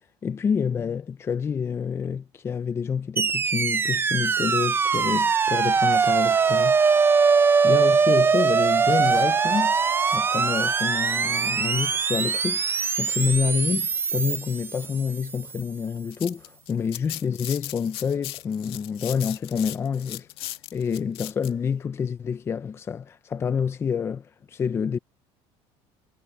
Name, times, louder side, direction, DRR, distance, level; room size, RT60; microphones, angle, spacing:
voice 1, 0.2-6.8 7.6-9.8 10.1-20.3 20.7-25.0, left 6 dB, 25° left, 0.6 m, -28 dB
sound 1, 3.2-15.4, right 5 dB, 20° right, 0.6 m, -22 dB
sound 2, 15.9-21.5, left 14 dB, 55° left, 2.0 m, -38 dB
cardioid pair, 150°, 11 cm